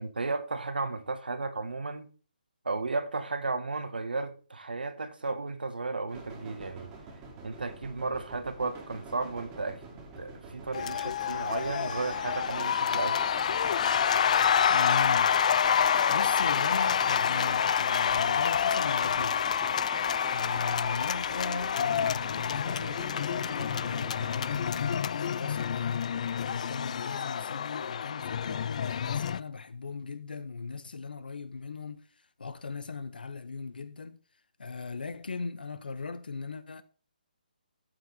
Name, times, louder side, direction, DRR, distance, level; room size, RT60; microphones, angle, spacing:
voice 1, 0.0-2.1 2.6-6.9 7.4-9.8 10.1-13.3, right 3 dB, 85° right, 1.6 m, -34 dB
sound 1, 6.1-24.9, right 3 dB, 20° right, 2.3 m, -47 dB
sound 2, 10.7-29.4, left 8 dB, 50° left, 0.4 m, -28 dB
voice 2, 14.7-19.4 20.3-26.1 26.4-32.0 32.4-34.2 34.6-36.8, left 4 dB, 75° left, 1.1 m, -38 dB
13.5 x 5.0 x 4.1 m
hypercardioid pair, 155°, 5 cm